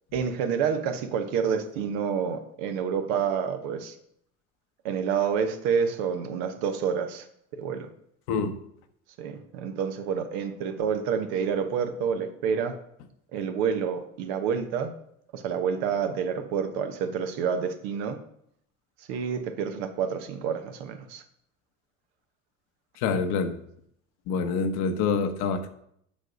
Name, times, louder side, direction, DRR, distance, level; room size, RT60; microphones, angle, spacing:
voice 1, 0.1-3.9 4.8-7.3 7.6-7.9 9.2-12.8 13.3-14.9 15.3-18.2 19.1-21.2, right 7 dB, 75° right, 7 dB, 1.1 m, -28 dB
voice 2, 23.0-23.6 24.3-25.7, left 5 dB, 70° left, 8 dB, 1.0 m, -26 dB
7.4 x 5.1 x 5.1 m, 0.72 s
hypercardioid pair, 75°, 39 cm